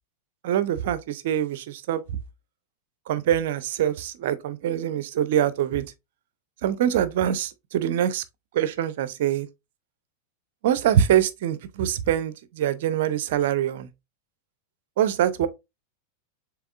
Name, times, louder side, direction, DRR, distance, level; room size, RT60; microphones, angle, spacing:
voice 1, 0.4-2.0 3.1-5.9 6.6-8.2 8.5-9.5 10.6-13.9 15.0-15.5, right 10 dB, 55° right, 0.6 m, -24 dB
7.0 x 3.0 x 2.4 m
figure-of-eight pair, 90°, 0 cm